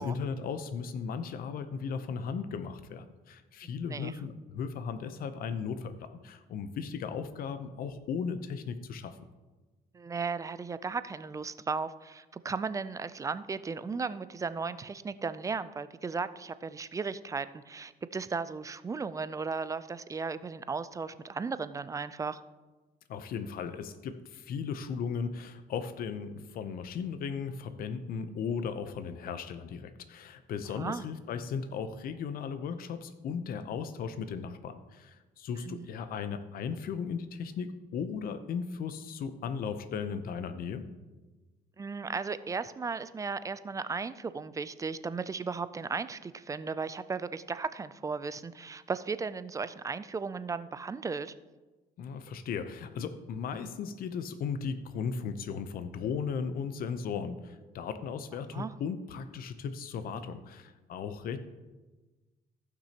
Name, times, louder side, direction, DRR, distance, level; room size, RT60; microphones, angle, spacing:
voice 1, 0.0-9.2 23.1-40.8 52.0-61.4, left 6 dB, 60° left, 10 dB, 0.7 m, -36 dB
voice 2, 9.9-22.4 30.7-31.0 35.6-35.9 41.8-51.3 58.5-58.7, right 4 dB, 20° right, 14 dB, 0.3 m, -36 dB
15.0 x 6.0 x 2.9 m, 1.2 s
cardioid pair, 110°, 17 cm